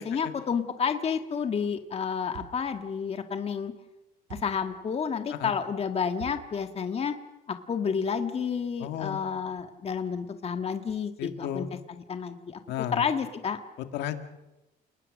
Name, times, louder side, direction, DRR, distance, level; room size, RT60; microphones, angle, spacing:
voice 1, 0.0-3.7 4.3-7.1 7.5-11.7 12.1-12.6 12.9-13.6, left 6 dB, 35° left, 7 dB, 1.7 m, -30 dB
sound 1, 2.3-2.8 4.3-4.7 6.2-6.6, right 10 dB, 90° right, 2.6 m, -45 dB
voice 2, 8.8-9.2 11.2-11.7 12.7-13.0 13.8-14.2, left 11 dB, 85° left, 7 dB, 2.1 m, -33 dB
29.0 x 20.0 x 6.4 m, 0.99 s
cardioid pair, 110°, 17 cm